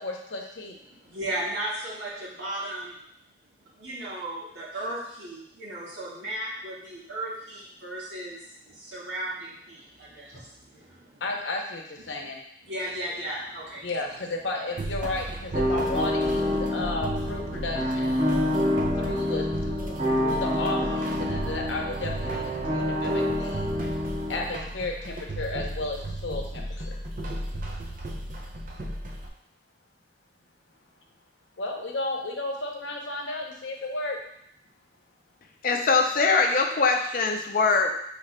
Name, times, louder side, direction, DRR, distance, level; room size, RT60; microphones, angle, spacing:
voice 1, 0.0-0.8 11.2-12.4 13.8-18.2 19.0-22.4 22.7-23.7 24.3-27.0 31.6-34.2, left 2 dB, 90° left, 1 dB, 0.7 m, -33 dB
voice 2, 0.9-3.0 3.8-11.2 12.1-12.2 12.6-13.9, right 1 dB, 90° right, -7 dB, 1.7 m, -35 dB
sound 1, 14.8-29.3, right 1 dB, 45° right, 0.5 m, -35 dB
sound 2, 15.5-24.5, left 1 dB, 25° right, 1.0 m, -27 dB
voice 3, 35.6-38.0, left 4 dB, 50° left, 3 dB, 0.5 m, -22 dB
6.4 x 3.2 x 2.2 m, 0.73 s
head